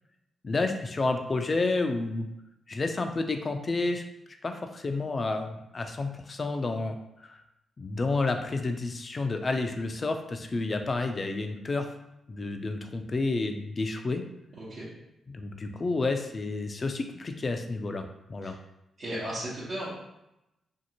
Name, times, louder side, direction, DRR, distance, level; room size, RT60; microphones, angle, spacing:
voice 1, 0.4-2.3 2.7-4.0 4.4-7.4 7.8-11.9 12.3-14.2 15.3-18.0 18.3-18.5, left 3 dB, 40° left, 6 dB, 0.4 m, -30 dB
voice 2, 14.5-14.9 18.4-18.5 19.0-19.9, right 1 dB, 60° right, -11 dB, 1.0 m, -35 dB
2.6 x 2.5 x 2.8 m, 0.88 s
supercardioid pair, 50°, 0 cm